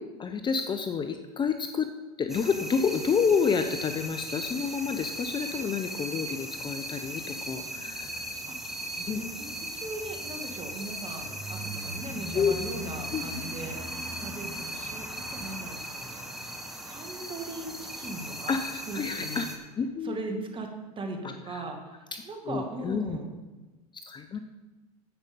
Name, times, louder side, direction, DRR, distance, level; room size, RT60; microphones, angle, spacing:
voice 1, 0.2-1.9 2.2-8.1 9.1-9.2 12.3-12.5 13.1-13.2 18.5-19.5 19.8-20.2 21.2-21.6 22.4-23.2 24.0-24.4, left 6 dB, 20° left, 8 dB, 0.7 m, -29 dB
sound 1, 2.3-19.6, right 1 dB, ahead, 1.4 m, -37 dB
voice 2, 8.5-16.5 16.9-18.6 18.8-19.4 20.0-20.7 21.0-23.3, right 2 dB, 25° right, 4 dB, 2.0 m, -39 dB
10.0 x 8.2 x 5.3 m, 1.2 s
hypercardioid pair, 100°, 20 cm